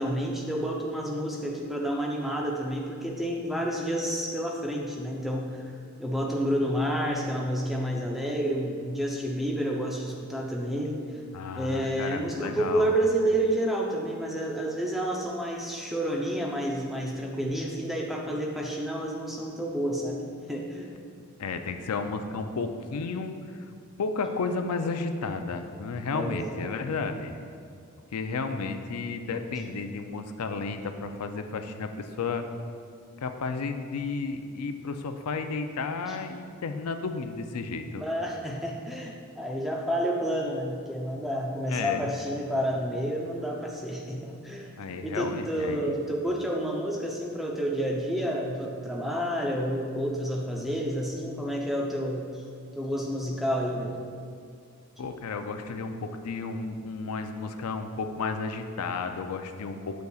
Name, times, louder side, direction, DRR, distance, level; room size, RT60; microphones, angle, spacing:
voice 1, 0.0-5.7 6.0-11.2 11.6-20.9 26.1-26.5 36.1-36.2 37.9-44.7 45.0-52.4 52.7-54.0, equal, ahead, -2 dB, 0.6 m, -30 dB
voice 2, 11.3-12.9 21.4-23.3 24.0-27.3 28.1-32.5 33.2-38.0 41.7-42.0 44.8-45.9 55.0-60.0, left 4 dB, 90° left, 7 dB, 0.5 m, -32 dB
8.0 x 6.4 x 2.4 m, 2.2 s
head